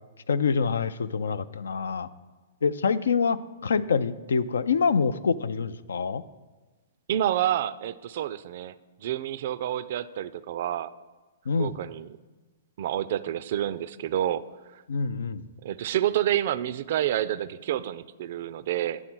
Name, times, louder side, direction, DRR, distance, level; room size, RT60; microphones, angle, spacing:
voice 1, 0.3-2.1 2.6-6.2 11.5-11.7 14.9-15.5, left 5 dB, 80° left, 16 dB, 0.3 m, -26 dB
voice 2, 7.1-8.7 9.0-10.9 11.6-12.1 12.8-14.8 15.6-19.0, right 12 dB, 55° right, 16 dB, 0.3 m, -28 dB
9.9 x 3.6 x 6.1 m, 1.3 s
hypercardioid pair, 125°, 0 cm